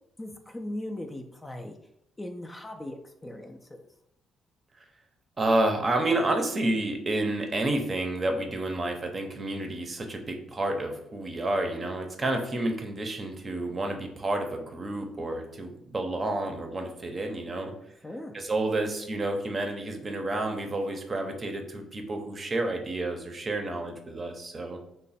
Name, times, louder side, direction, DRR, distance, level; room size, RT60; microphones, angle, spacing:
voice 1, 0.2-1.8 2.2-3.9 18.0-18.3, left 1 dB, 20° left, 4 dB, 0.3 m, -39 dB
voice 2, 5.4-17.7 18.3-24.8, right 2 dB, 35° right, 4 dB, 0.6 m, -30 dB
3.0 x 2.1 x 4.1 m, 0.78 s
cardioid pair, 90°, 0 cm